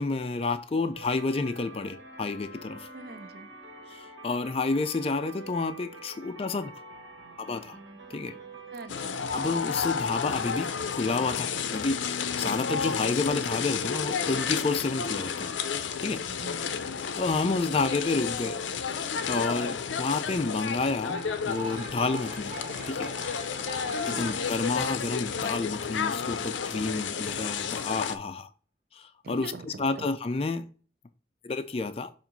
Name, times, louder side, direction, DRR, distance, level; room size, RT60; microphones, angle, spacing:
voice 1, 0.0-2.9 3.9-6.7 7.4-7.8 8.1-8.3 9.3-12.0 12.3-15.5 16.0-16.2 17.2-18.6 19.2-22.6 22.9-23.1 24.1-28.5 28.9-30.7 31.4-32.1, left 3 dB, 30° left, 0.4 m, -30 dB
sound 1, 0.9-8.9, right 3 dB, 85° right, 1.3 m, -46 dB
voice 2, 2.9-3.5 8.7-9.2 16.3-16.9 23.8-24.4 29.2-30.1, right 3 dB, 55° right, 0.5 m, -44 dB
sound 2, 8.9-28.2, left 6 dB, 85° left, 0.5 m, -32 dB
sound 3, 20.9-26.3, right 1 dB, 25° right, 2.0 m, -42 dB
7.4 x 2.5 x 5.2 m
head